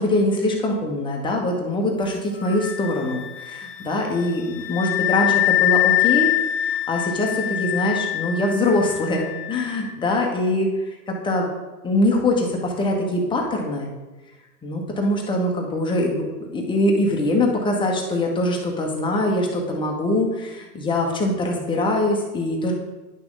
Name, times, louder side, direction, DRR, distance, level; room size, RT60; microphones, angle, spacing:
voice 1, 0.0-4.4 4.7-6.3 6.6-10.7 11.1-11.5 11.8-13.9 14.6-16.3 16.5-22.7, left 1 dB, 10° left, 0 dB, 1.2 m, -23 dB
Wind instrument woodwind instrument, 2.4-9.8, left 14 dB, 45° left, 0.8 m, -24 dB
10.5 x 5.9 x 3.9 m, 1.1 s
hypercardioid pair, 135°, 47 cm